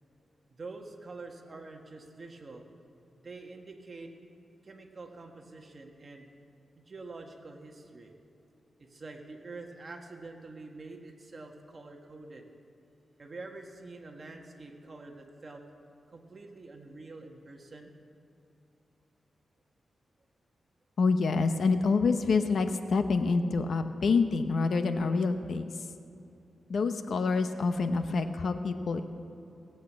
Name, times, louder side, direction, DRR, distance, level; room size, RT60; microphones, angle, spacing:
voice 1, 0.5-2.6 3.2-4.1 4.6-6.3 6.8-8.1 8.8-12.4 13.2-15.6 16.1-17.9, right 3 dB, 40° right, 2 dB, 1.6 m, -46 dB
voice 2, 21.0-25.7 26.7-29.0, left 4 dB, 70° left, 8 dB, 0.8 m, -27 dB
18.5 x 8.4 x 7.4 m, 2.8 s
wide cardioid pair, 125°, 0 cm